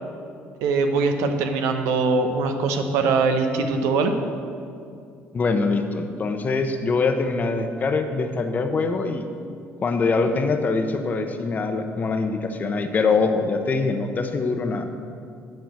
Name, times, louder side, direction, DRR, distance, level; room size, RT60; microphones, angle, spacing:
voice 1, 0.6-4.1, right 4 dB, 90° right, 6 dB, 0.8 m, -22 dB
voice 2, 5.3-9.2 9.8-14.9, left 4 dB, 35° left, 7 dB, 0.8 m, -23 dB
9.6 x 4.4 x 7.6 m, 2.4 s
cardioid pair, 100°, 5 cm